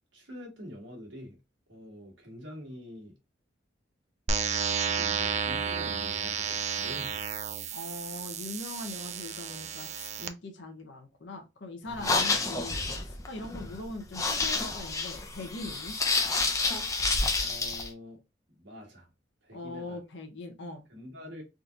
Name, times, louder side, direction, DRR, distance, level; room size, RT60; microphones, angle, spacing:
voice 1, 0.1-1.4 1.7-3.1 4.9-7.3 17.4-18.2 18.6-19.1 19.4-20.0 20.9-21.4, equal, 65° right, 1.5 m, -45 dB
sound 1, 4.3-10.3, right 6 dB, 35° right, 0.3 m, -32 dB
voice 2, 7.7-16.0 19.5-20.8, left 2 dB, 65° left, 0.7 m, -41 dB
sound 2, 11.9-17.9, left 3 dB, 15° left, 0.5 m, -29 dB
3.6 x 2.8 x 2.4 m
head